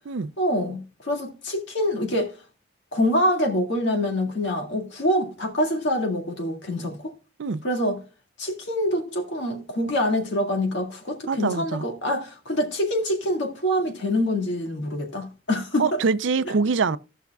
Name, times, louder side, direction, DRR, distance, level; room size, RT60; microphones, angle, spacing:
voice 1, 0.4-2.3 2.9-7.0 7.6-8.0 8.4-15.9, left 1 dB, 60° left, 2.0 m, -25 dB
voice 2, 11.3-11.8 15.8-17.0, right 4 dB, 65° right, 0.4 m, -24 dB
17.0 x 5.8 x 2.3 m
head